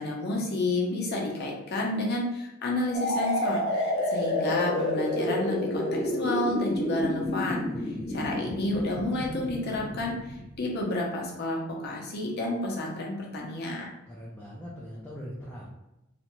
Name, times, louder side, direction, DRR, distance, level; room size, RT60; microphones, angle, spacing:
voice 1, 0.0-3.6 4.1-13.9, left 1 dB, 55° left, -2 dB, 0.6 m, -30 dB
sound 1, 2.9-10.6, left 1 dB, 25° left, 1.1 m, -30 dB
voice 2, 14.1-15.7, equal, 10° left, -6 dB, 0.4 m, -41 dB
2.5 x 2.1 x 3.0 m, 0.93 s
head